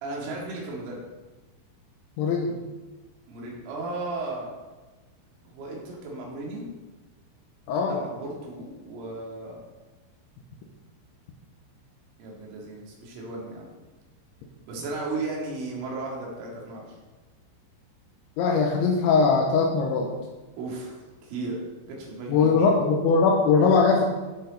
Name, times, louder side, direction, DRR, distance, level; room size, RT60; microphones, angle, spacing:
voice 1, 0.0-1.0 3.3-4.6 5.5-6.7 7.9-9.6 12.2-13.7 14.6-16.8 20.6-21.6 21.9-22.7, right 2 dB, 90° right, -3 dB, 4.8 m, -35 dB
voice 2, 2.2-2.5 7.7-8.1 18.4-20.1 22.3-24.0, left 4 dB, 80° left, 0 dB, 3.1 m, -21 dB
14.0 x 6.4 x 4.0 m, 1.2 s
omnidirectional pair, 5.6 m